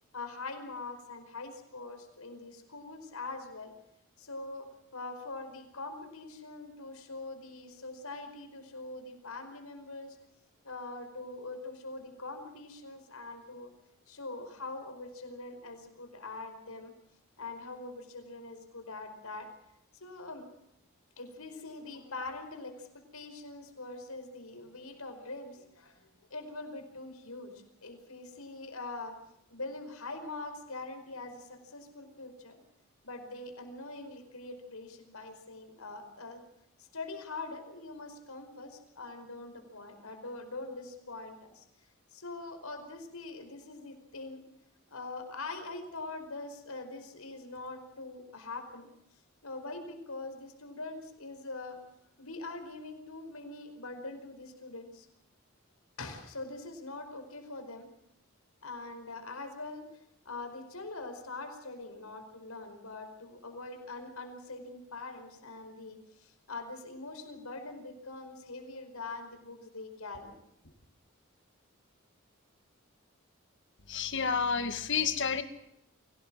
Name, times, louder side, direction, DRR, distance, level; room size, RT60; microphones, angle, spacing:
voice 1, 0.1-3.7 4.2-10.2 10.6-13.7 14.1-16.9 17.4-19.5 20.0-20.5 21.2-27.5 27.8-29.2 29.5-32.6 33.0-36.4 36.8-41.6 42.1-44.4 44.9-48.9 49.4-51.8 52.2-55.1 56.0-57.9 58.6-59.8 60.2-70.4, left 3 dB, 80° left, 6 dB, 4.9 m, -43 dB
voice 2, 73.9-75.4, left 6 dB, 55° left, 10 dB, 2.0 m, -30 dB
24.0 x 18.0 x 7.5 m, 0.79 s
head